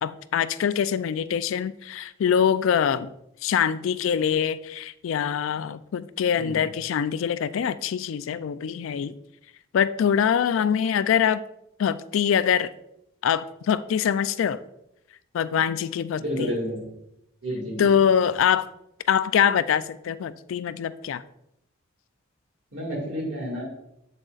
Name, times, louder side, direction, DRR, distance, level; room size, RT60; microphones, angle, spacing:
voice 1, 0.0-3.1 3.4-9.1 9.7-11.4 11.8-12.7 13.2-14.6 15.3-16.5 17.8-18.7 19.1-21.2, left 8 dB, 75° left, 0.3 m, -24 dB
voice 2, 16.2-16.9 17.4-18.1 22.7-23.6, equal, 65° right, 2.1 m, -30 dB
7.5 x 6.3 x 2.4 m
head